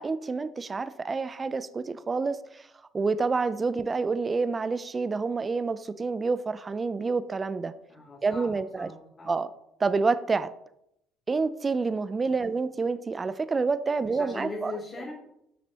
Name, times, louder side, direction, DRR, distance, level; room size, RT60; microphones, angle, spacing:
voice 1, 0.0-2.7 2.9-7.7 8.2-8.9 9.3-9.5 9.8-10.5 11.3-14.8, right 4 dB, 30° right, 13 dB, 0.5 m, -28 dB
voice 2, 7.9-9.4 12.3-12.5 14.0-15.1, left 3 dB, 40° left, -6 dB, 2.9 m, -40 dB
9.4 x 6.0 x 2.9 m, 0.78 s
hypercardioid pair, 60°, 0 cm